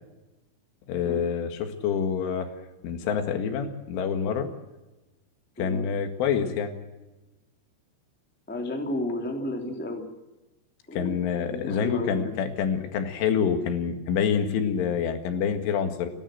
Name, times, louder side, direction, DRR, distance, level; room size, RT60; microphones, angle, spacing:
voice 1, 0.9-2.5 2.8-4.5 5.6-6.7 10.9-16.1, left 7 dB, 85° left, 7 dB, 4.4 m, -27 dB
voice 2, 8.5-10.0 10.9-11.2 11.5-12.3, left 1 dB, 5° left, 2 dB, 2.1 m, -32 dB
29.5 x 12.5 x 7.8 m, 1.0 s
omnidirectional pair, 5.5 m